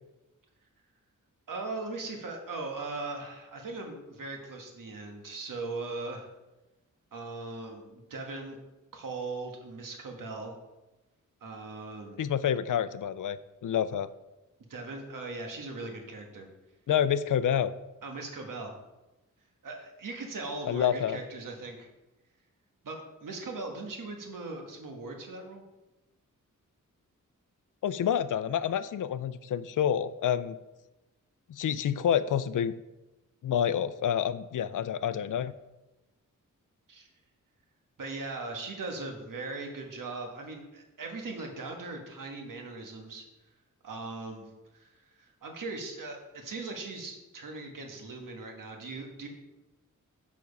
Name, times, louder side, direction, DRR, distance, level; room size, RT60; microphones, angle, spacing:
voice 1, 1.5-6.3 7.1-8.6 8.9-10.5 11.4-12.2 14.7-16.5 18.0-18.7 19.6-21.9 22.8-25.6 36.9-37.1 38.0-43.3 43.8-49.3, right 3 dB, 80° right, 2 dB, 1.6 m, -39 dB
voice 2, 12.2-13.4 13.6-14.1 16.9-17.7 20.7-21.2 27.8-30.6 31.5-32.7 33.4-35.5, left 9 dB, 75° left, 15 dB, 0.5 m, -28 dB
7.0 x 6.1 x 5.4 m, 1.0 s
wide cardioid pair, 125°, 32 cm